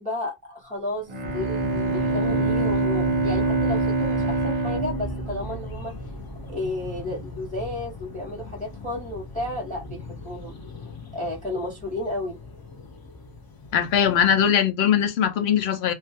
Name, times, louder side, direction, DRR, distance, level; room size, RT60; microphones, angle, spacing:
voice 1, 0.0-5.9 6.5-10.5 11.1-12.4, left 1 dB, 10° left, 0.8 m, -32 dB
Bowed string instrument, 1.1-6.3, right 3 dB, 50° right, 0.6 m, -25 dB
sound 1, 1.2-14.5, left 3 dB, 40° left, 0.3 m, -37 dB
voice 2, 13.7-15.9, left 8 dB, 80° left, 0.8 m, -21 dB
2.3 x 2.2 x 2.6 m
omnidirectional pair, 1.1 m